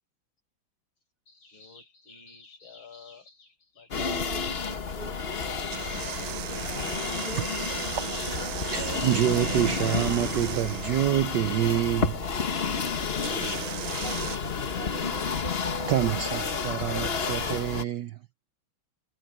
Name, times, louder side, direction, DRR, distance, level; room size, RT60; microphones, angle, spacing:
voice 1, 1.3-4.9, left 5 dB, 80° left, 6.1 m, -52 dB
sound 1, 3.9-17.8, left 5 dB, 35° left, 1.2 m, -31 dB
voice 2, 4.0-5.2 7.1-8.2 8.4-9.8 14.0-16.1, right 3 dB, 45° right, 0.7 m, -42 dB
sound 2, 5.7-11.2 13.2-14.4, right 16 dB, 90° right, 1.4 m, -37 dB
voice 3, 8.7-12.2 15.9-18.2, right 13 dB, 70° right, 1.1 m, -27 dB
omnidirectional pair, 2.2 m